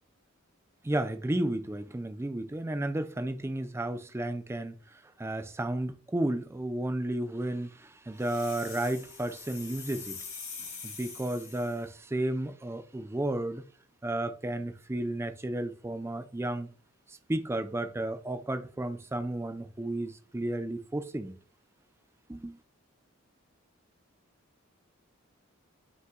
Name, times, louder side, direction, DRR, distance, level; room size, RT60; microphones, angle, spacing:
voice 1, 0.8-13.6 14.0-16.7 17.1-21.3 22.3-22.6, right 1 dB, 10° right, 0.4 m, -33 dB
sound 1, 8.2-11.8, left 5 dB, 90° left, 1.9 m, -44 dB
5.4 x 2.2 x 3.6 m
head